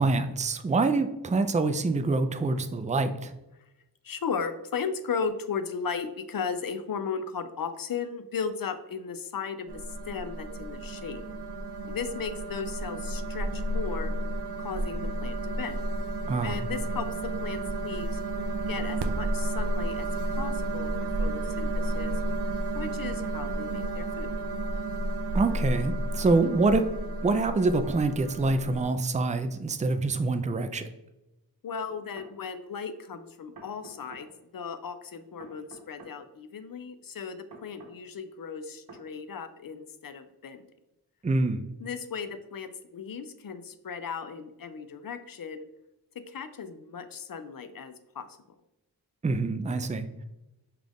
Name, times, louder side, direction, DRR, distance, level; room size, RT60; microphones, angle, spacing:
voice 1, 0.0-3.3 16.3-16.6 25.3-26.9 27.2-30.9 41.2-41.7 49.2-50.2, right 3 dB, 20° right, 9 dB, 0.4 m, -26 dB
voice 2, 4.0-11.3 11.9-14.1 14.6-15.8 16.4-18.2 18.7-20.1 20.4-20.9 21.2-22.1 22.7-24.4 31.6-34.3 34.5-40.6 41.8-45.7 46.3-48.3, left 6 dB, 60° left, 10 dB, 0.6 m, -36 dB
sound 1, 9.7-28.9, right 2 dB, 85° right, 0.5 m, -32 dB
sound 2, 30.6-30.7 31.9-32.3 33.5-34.3 35.4-36.2 37.5-38.0 38.9-39.1, right 2 dB, 60° right, 1.2 m, -48 dB
5.7 x 2.4 x 3.5 m, 0.96 s
cardioid pair, 45°, 40 cm